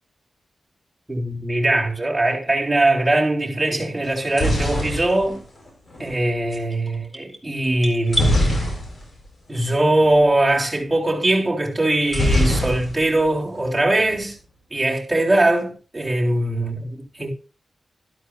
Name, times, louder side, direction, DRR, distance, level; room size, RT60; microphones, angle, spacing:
voice 1, 1.1-5.4 6.0-8.6 9.5-14.4 14.7-17.3, right 1 dB, 15° right, 3.7 m, -21 dB
sound 1, 4.0-6.2 8.1-9.3 9.6-9.7 9.9-10.2 12.1-13.3 13.6-14.2, left 1 dB, 50° left, 6.2 m, -23 dB
sound 2, 6.5-8.4, equal, 15° left, 4.3 m, -30 dB
13.0 x 12.5 x 2.5 m
cardioid pair, 70°, 0 cm